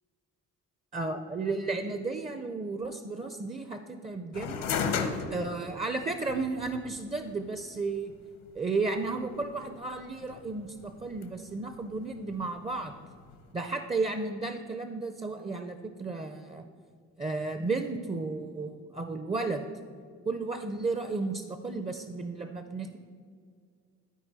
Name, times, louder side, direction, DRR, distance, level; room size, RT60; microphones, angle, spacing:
voice 1, 0.9-4.7 5.3-8.1 8.5-13.0 13.5-16.6 17.2-19.7 20.3-23.0, right 3 dB, 20° right, 8 dB, 0.4 m, -33 dB
sound 1, 4.3-13.5, left 6 dB, 80° left, 0.9 m, -38 dB
13.0 x 4.5 x 4.0 m, 2.1 s
cardioid pair, 80°, 33 cm